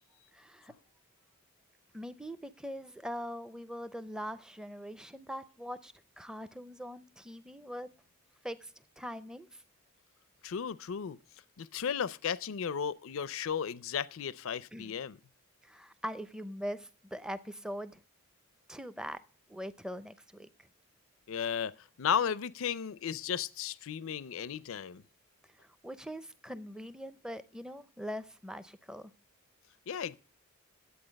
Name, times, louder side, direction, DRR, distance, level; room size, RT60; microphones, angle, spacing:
voice 1, 0.3-0.7 1.9-7.9 8.4-9.6 14.7-14.9 15.6-18.0 18.7-19.2 19.5-20.7 25.6-29.1, equal, 5° right, 0.5 m, -42 dB
voice 2, 10.4-11.2 11.6-15.2 21.3-21.7 22.0-25.0 29.9-30.2, left 7 dB, 70° left, 0.5 m, -34 dB
11.0 x 8.2 x 5.1 m
head